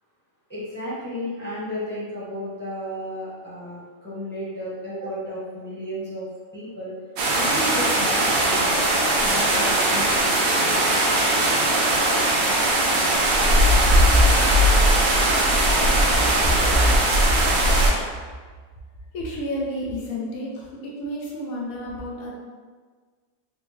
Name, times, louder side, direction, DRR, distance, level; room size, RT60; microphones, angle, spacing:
voice 1, 0.5-6.3 6.5-6.9 7.3-10.8, equal, 10° left, -11 dB, 0.9 m, -33 dB
sound 1, 7.2-17.9, right 1 dB, 65° right, 0.8 m, -19 dB
voice 2, 19.1-22.3, equal, 85° left, -3 dB, 1.1 m, -31 dB
3.3 x 2.2 x 3.1 m, 1.5 s
omnidirectional pair, 1.4 m